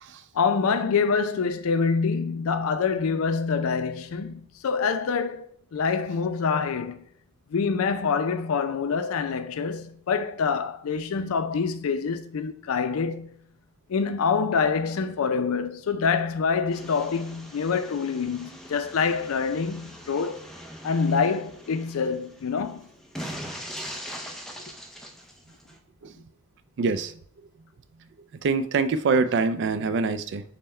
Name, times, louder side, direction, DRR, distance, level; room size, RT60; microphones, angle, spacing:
voice 1, 0.3-7.0 7.5-13.3 13.9-20.4 20.8-22.9, left 5 dB, 75° left, 0.4 m, -26 dB
sound 1, 16.7-25.8, equal, ahead, 0.6 m, -41 dB
voice 2, 26.8-27.1 28.4-30.4, right 4 dB, 55° right, 0.4 m, -24 dB
5.5 x 2.1 x 4.3 m
head